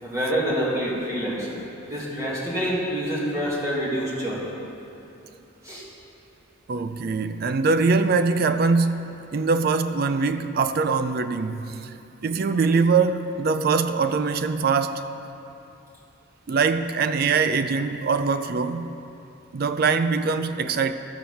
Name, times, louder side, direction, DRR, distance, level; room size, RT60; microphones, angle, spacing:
voice 1, 0.0-1.6 1.9-4.5 5.6-5.9, equal, 15° right, 2.0 m, -27 dB
voice 2, 6.7-11.9 12.2-15.1 16.5-18.9 19.5-20.9, right 4 dB, 50° right, 0.4 m, -23 dB
13.5 x 4.5 x 7.0 m
head